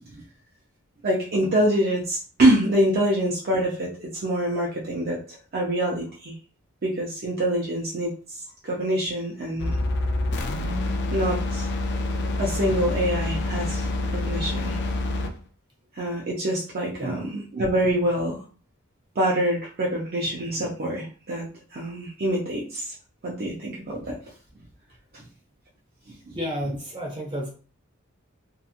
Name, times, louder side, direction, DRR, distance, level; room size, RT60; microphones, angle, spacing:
voice 1, 1.0-6.3 6.8-9.8 11.1-11.7 12.4-14.8 15.9-18.4 19.2-21.5 21.7-22.9 23.2-24.2 25.1-25.3 26.1-26.4, right 1 dB, 45° right, -3 dB, 0.5 m, -25 dB
sound 1, 9.6-15.4, left 2 dB, 55° left, 0.3 m, -27 dB
voice 2, 26.3-27.5, equal, 25° right, -2 dB, 0.8 m, -31 dB
2.7 x 2.3 x 2.4 m, 0.39 s
head